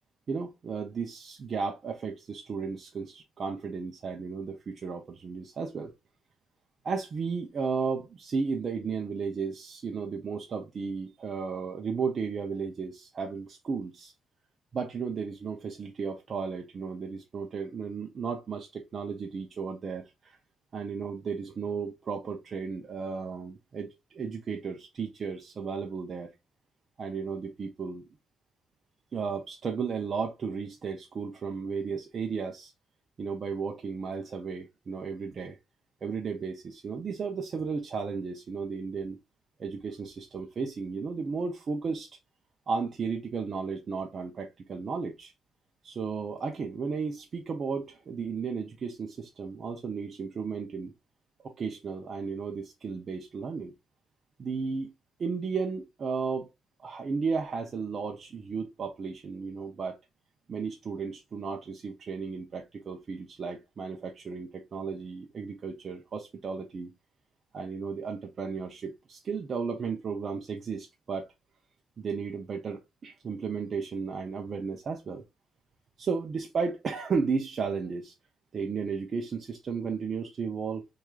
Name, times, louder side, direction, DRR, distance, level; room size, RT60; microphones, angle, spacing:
voice 1, 0.3-5.9 6.8-14.1 14.7-20.4 20.7-26.3 27.0-28.0 29.1-32.7 33.2-35.6 36.0-39.2 39.6-42.1 42.7-45.3 45.8-50.9 51.4-53.7 54.4-54.9 55.2-56.5 56.8-60.0 60.5-66.9 67.5-71.3 72.0-75.2 76.0-78.1 78.5-80.9, right 5 dB, 35° right, 0.4 m, -34 dB
4.6 x 2.3 x 2.2 m
cardioid pair, 165°, 0 cm